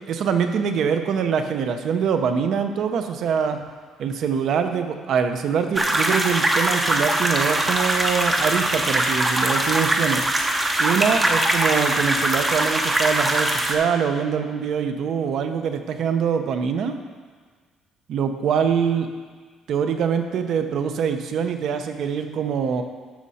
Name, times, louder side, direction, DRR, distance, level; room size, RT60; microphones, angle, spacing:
voice 1, 0.1-3.6 4.0-10.2 10.8-16.9 18.1-19.1 19.7-22.8, right 7 dB, 50° right, 7 dB, 0.7 m, -24 dB
sound 1, 5.8-13.8, right 1 dB, 15° right, 0.7 m, -22 dB
12.0 x 6.3 x 4.2 m, 1.5 s
cardioid pair, 180°, 0 cm